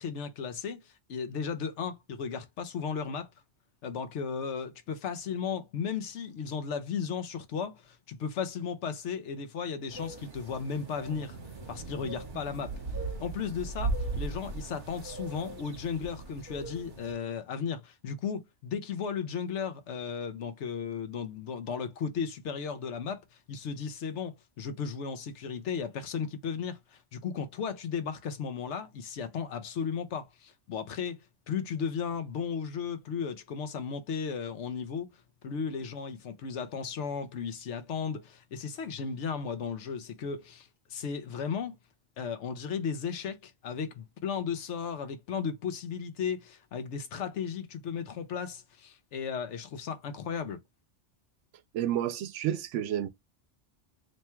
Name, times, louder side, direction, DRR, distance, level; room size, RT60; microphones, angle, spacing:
voice 1, 0.0-3.3 3.8-11.4 11.7-12.7 13.2-23.2 23.5-31.2 31.5-35.1 35.4-41.8 42.2-50.6, left 6 dB, 75° left, 1.0 m, -35 dB
Fire-bellied toads in a windy spring day, 9.9-17.1, right 3 dB, 45° right, 1.1 m, -38 dB
voice 2, 51.7-53.1, right 11 dB, 85° right, 0.9 m, -30 dB
3.1 x 2.3 x 4.3 m
omnidirectional pair, 1.2 m